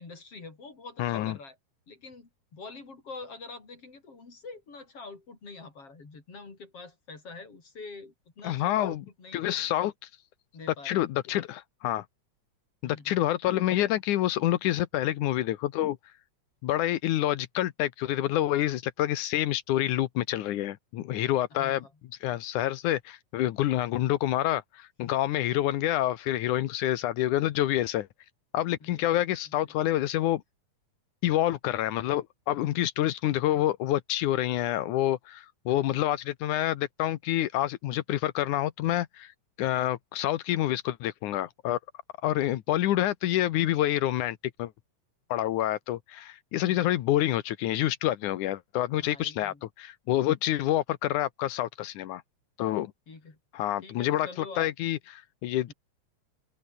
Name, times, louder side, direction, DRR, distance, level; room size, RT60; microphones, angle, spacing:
voice 1, 0.0-1.6 1.9-9.5 10.5-11.0 12.8-13.2 21.5-21.9 28.8-29.8 49.0-49.6 53.1-53.4 53.8-54.7 55.7-55.8, left 3 dB, 50° left, 5.7 m, -46 dB
voice 2, 1.0-1.4 8.4-9.0 9.3-9.9 10.8-12.1 12.8-16.0 16.6-21.8 22.2-28.1 28.5-30.4 31.2-39.3 39.6-41.8 42.2-44.7 45.3-52.2 52.6-52.9 53.5-55.7, left 13 dB, 85° left, 2.5 m, -27 dB
open air
omnidirectional pair, 3.4 m